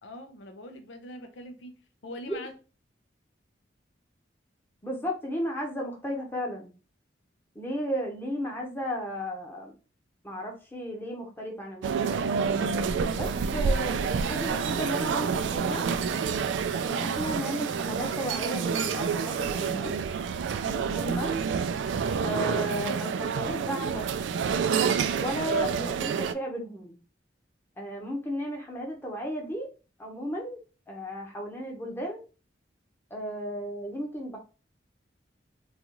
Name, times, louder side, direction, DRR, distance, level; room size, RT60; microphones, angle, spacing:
voice 1, 0.0-1.7 2.0-2.5, left 1 dB, 80° left, 0.6 m, -42 dB
voice 2, 4.8-6.7 7.5-9.7 10.2-12.2 13.1-15.8 16.7-19.9 20.6-21.4 22.2-24.1 25.1-27.0 27.8-29.7 30.0-30.6 30.9-32.2 33.1-34.4, equal, 10° left, 0.8 m, -34 dB
sound 1, 11.8-26.3, right 6 dB, 75° right, 0.3 m, -28 dB
4.0 x 2.4 x 2.9 m
head